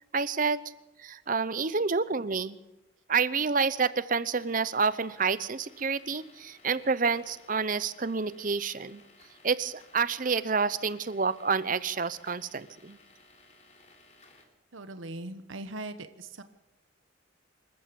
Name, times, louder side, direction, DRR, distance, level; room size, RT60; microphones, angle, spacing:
voice 1, 0.1-0.6 1.0-2.6 3.1-9.0 9.4-13.0, right 5 dB, 40° right, 16 dB, 0.7 m, -28 dB
sound 1, 4.4-14.4, left 3 dB, 35° left, 3.4 m, -58 dB
voice 2, 14.7-16.4, right 2 dB, 80° right, 10 dB, 1.1 m, -40 dB
26.0 x 14.0 x 7.0 m, 0.96 s
head